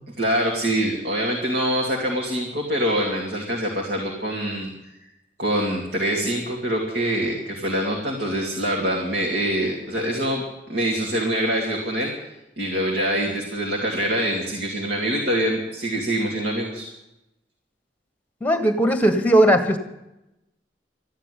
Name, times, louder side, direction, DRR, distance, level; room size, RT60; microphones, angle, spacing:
voice 1, 0.2-4.7 5.4-10.4 10.7-12.1 12.6-16.9, right 1 dB, 75° right, -1 dB, 2.6 m, -24 dB
voice 2, 18.4-19.8, right 1 dB, 10° left, 8 dB, 1.4 m, -18 dB
13.5 x 9.8 x 9.9 m, 0.90 s
head